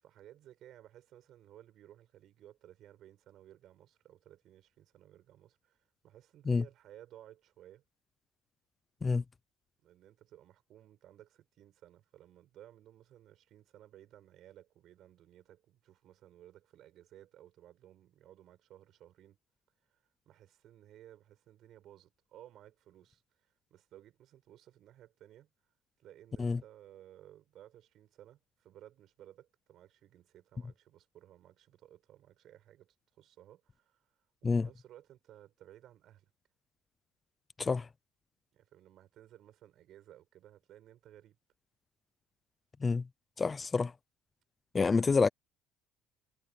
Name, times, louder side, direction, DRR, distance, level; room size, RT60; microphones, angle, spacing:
voice 1, 0.0-7.8 9.8-19.4 19.9-25.5 26.0-34.1 34.4-36.3 38.5-41.4 45.0-45.1, right 12 dB, 55° right, 8.0 m, -57 dB
voice 2, 43.4-43.9 44.7-45.3, left 4 dB, 25° left, 0.6 m, -28 dB
cardioid pair, 110°, 0 cm